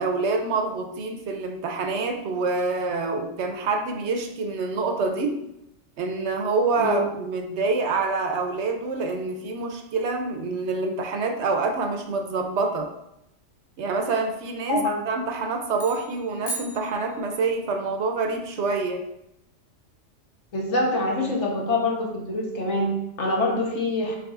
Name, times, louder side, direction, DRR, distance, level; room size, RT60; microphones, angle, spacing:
voice 1, 0.0-5.4 6.0-12.9 13.8-19.0, right 3 dB, 70° right, 4 dB, 0.8 m, -26 dB
voice 2, 6.8-7.1 14.7-15.0 20.5-24.2, left 2 dB, 65° left, -1 dB, 1.2 m, -25 dB
sound 1, 15.8-17.7, right 2 dB, 35° left, 0.7 m, -37 dB
6.0 x 3.3 x 2.4 m, 0.83 s
omnidirectional pair, 1.3 m